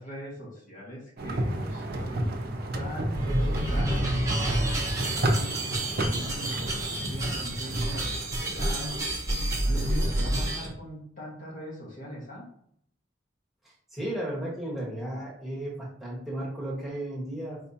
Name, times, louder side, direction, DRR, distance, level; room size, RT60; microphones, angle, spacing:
voice 1, 0.0-2.4 2.7-4.8 5.2-5.6 6.0-9.0 9.6-12.5, equal, 45° left, -5 dB, 1.6 m, -41 dB
sound 1, 1.2-10.7, right 1 dB, 55° right, 0.7 m, -32 dB
sound 2, 3.1-10.7, right 1 dB, 15° right, 1.1 m, -29 dB
voice 2, 13.6-17.6, right 1 dB, ahead, -6 dB, 1.6 m, -34 dB
4.8 x 3.4 x 2.8 m, 0.65 s
head